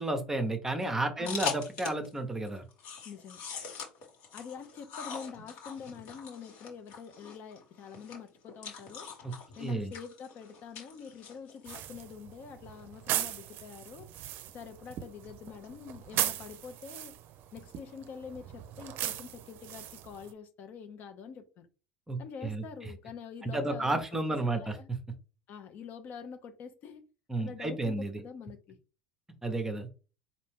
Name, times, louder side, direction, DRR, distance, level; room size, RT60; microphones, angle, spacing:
voice 1, 0.0-2.6 9.2-9.3 9.6-9.9 22.1-22.6 23.4-24.8 27.3-28.1 29.4-29.9, right 2 dB, 10° right, 0.8 m, -32 dB
sound 1, 1.2-2.1 2.4-11.8, left 6 dB, 65° left, 1.7 m, -42 dB
voice 2, 3.0-3.4 4.3-9.1 9.5-14.1 14.5-17.1 17.5-21.7 22.2-24.0 24.5-24.9 25.5-27.0 27.4-28.8, left 6 dB, 45° left, 0.7 m, -46 dB
sound 2, 11.7-20.3, right 12 dB, 50° right, 0.5 m, -38 dB
4.3 x 2.7 x 3.5 m
cardioid pair, 135°, 4 cm